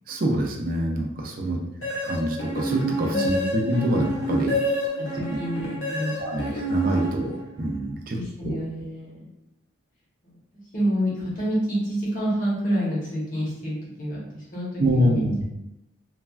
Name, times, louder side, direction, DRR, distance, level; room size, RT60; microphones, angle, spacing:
voice 1, 0.1-1.6 2.0-4.6 5.3-5.4 6.2-8.2 8.4-8.5 14.8-15.4, right 1 dB, 45° right, 1 dB, 0.4 m, -25 dB
sound 1, 1.8-7.6, equal, 65° left, 0.7 m, -28 dB
voice 2, 3.1-3.6 5.0-6.1 8.1-9.3 10.2-10.4 10.7-15.4, equal, 40° left, -6 dB, 1.0 m, -28 dB
3.2 x 2.3 x 2.3 m, 0.89 s
head